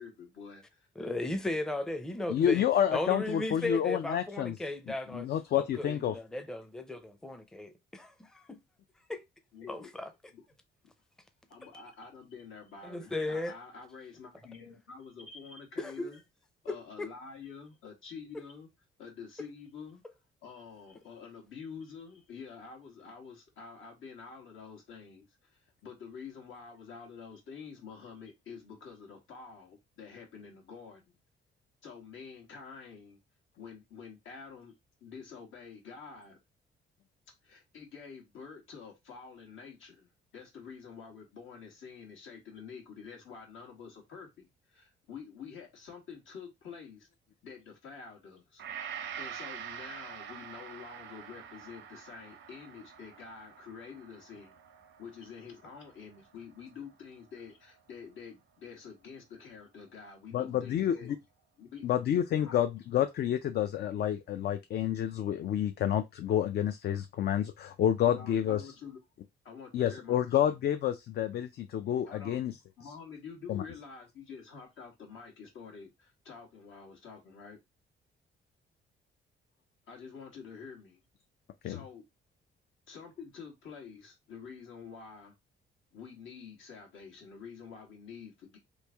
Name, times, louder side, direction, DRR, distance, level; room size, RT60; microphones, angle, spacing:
voice 1, 0.0-0.9 9.5-9.9 10.3-10.4 11.5-16.2 16.6-18.7 19.0-20.0 20.4-31.2 31.8-33.2 33.6-34.7 35.0-36.4 37.4-47.1 47.4-48.6 49.2-54.6 55.0-61.1 61.6-61.8 62.1-62.6 68.0-69.0 69.4-70.4 72.1-72.4 72.8-77.6 79.9-81.0 81.6-82.0 82.9-85.3 85.9-88.6, left 6 dB, 80° left, 1.4 m, -48 dB
voice 2, 1.0-2.6 2.9-5.3 5.5-8.6 9.1-9.2 9.7-10.1 12.8-13.5 15.8-16.1 16.7-17.1 18.3-18.4, left 2 dB, 5° left, 0.5 m, -36 dB
voice 3, 2.3-4.6 5.1-6.2 60.3-61.2 61.8-68.6 69.7-72.5 73.5-73.6 81.6-81.8, left 10 dB, 55° left, 0.4 m, -29 dB
Gong, 48.6-56.9 57.4-57.5, right 8 dB, 70° right, 0.6 m, -46 dB
3.1 x 2.6 x 3.4 m
cardioid pair, 90°, 20 cm